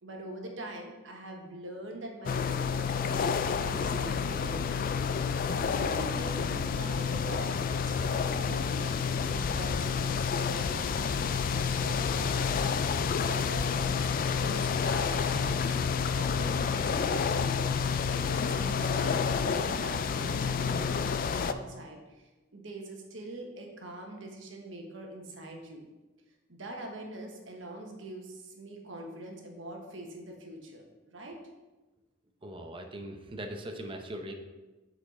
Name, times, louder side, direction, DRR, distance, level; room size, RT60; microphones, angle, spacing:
voice 1, 0.0-4.9 5.5-11.1 11.5-12.7 13.0-15.7 16.1-25.9 26.5-31.4, right 1 dB, 80° right, 1 dB, 1.2 m, -43 dB
sound 1, 2.3-21.5, left 6 dB, 50° left, 0.3 m, -29 dB
voice 2, 32.4-34.3, right 1 dB, 25° right, 4 dB, 0.7 m, -40 dB
7.4 x 4.3 x 4.2 m, 1.1 s
head